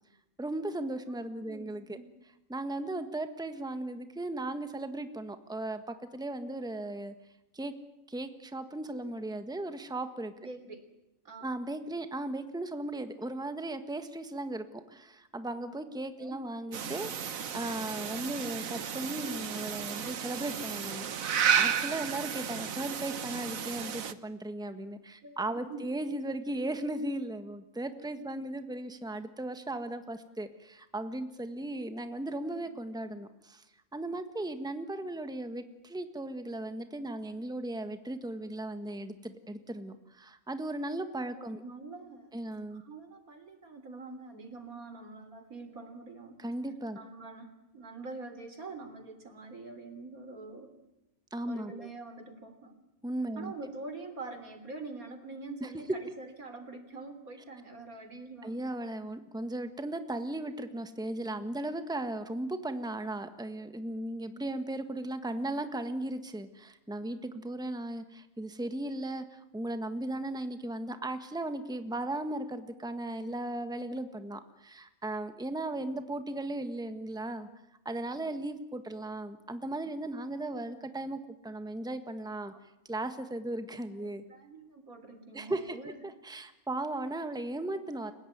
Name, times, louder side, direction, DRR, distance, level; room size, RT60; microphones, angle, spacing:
voice 1, 0.4-2.0 2.5-7.1 7.5-7.7 8.1-10.3 11.4-33.6 33.9-41.6 42.3-42.8 46.4-47.0 51.3-51.9 53.0-53.5 55.6-55.7 58.4-77.5 77.8-82.5 82.9-84.2 85.3-85.8 86.0-88.1, right 1 dB, 5° right, 9 dB, 1.5 m, -37 dB
voice 2, 1.4-2.1 10.4-10.9 11.3-11.5 16.2-16.4 25.2-25.9 28.3-28.4 32.5-32.8 41.3-42.5 42.7-46.5 47.0-50.7 51.5-52.8 53.4-58.6 84.0-86.0, right 3 dB, 90° right, 8 dB, 3.9 m, -45 dB
sound 1, 16.7-24.1, right 8 dB, 70° right, 1.5 m, -33 dB
30.0 x 17.0 x 9.5 m, 0.94 s
omnidirectional pair, 1.5 m